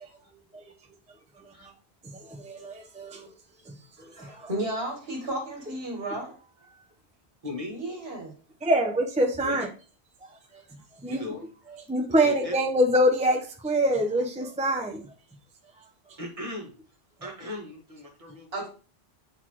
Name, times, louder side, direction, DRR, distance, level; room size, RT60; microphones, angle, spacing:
voice 1, 2.1-3.3 4.2-4.5 8.6-9.7 10.3-10.6 11.0-11.2 11.9-15.0, equal, 10° right, 0.6 m, -25 dB
voice 2, 4.0-6.8 7.7-8.3 18.5-18.7, right 1 dB, 65° right, 1.6 m, -34 dB
voice 3, 7.4-7.8 9.4-9.6 11.0-11.4 11.7-11.8 12.2-12.5 16.2-16.7 17.2-18.6, left 1 dB, 35° right, 1.6 m, -38 dB
7.9 x 4.1 x 2.9 m
omnidirectional pair, 1.1 m